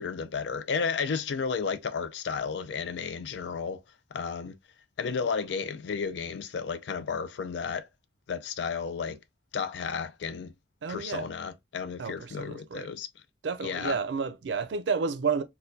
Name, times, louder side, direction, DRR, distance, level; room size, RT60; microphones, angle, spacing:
voice 1, 0.0-3.8 4.1-4.5 5.0-7.9 8.3-9.2 9.5-10.5 10.9-13.1 13.6-14.0, left 5 dB, 75° left, 0.4 m, -32 dB
voice 2, 10.8-11.3 12.0-12.9 13.4-15.4, right 5 dB, 85° right, 0.4 m, -31 dB
4.2 x 2.2 x 2.5 m
head